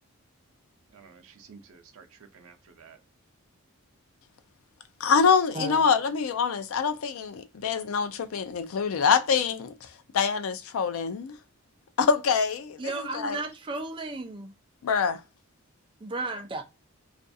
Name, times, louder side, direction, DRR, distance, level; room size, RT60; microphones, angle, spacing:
voice 1, 0.9-3.0, right 5 dB, 75° right, 0.5 m, -52 dB
voice 2, 5.0-9.9 10.1-11.4 12.0-13.4 14.8-15.2, left 6 dB, 75° left, 0.4 m, -25 dB
voice 3, 12.8-14.5 16.0-16.6, right 2 dB, 25° right, 0.4 m, -34 dB
2.4 x 2.3 x 2.6 m
head